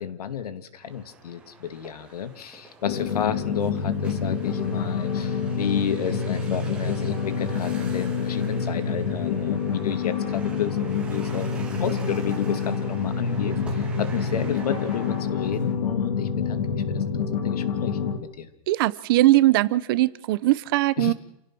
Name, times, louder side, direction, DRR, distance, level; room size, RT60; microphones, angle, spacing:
voice 1, 0.0-11.5 11.8-17.0 17.4-18.0 18.4-18.5 21.0-21.1, left 8 dB, 90° left, 12 dB, 2.5 m, -31 dB
sound 1, 0.8-15.7, right 3 dB, 5° right, 3.2 m, -45 dB
sound 2, 2.8-18.2, left 6 dB, 55° left, 3.0 m, -27 dB
voice 2, 18.7-21.1, right 17 dB, 35° right, 17 dB, 0.9 m, -20 dB
29.0 x 17.5 x 6.3 m, 0.80 s
supercardioid pair, 170°, 19 cm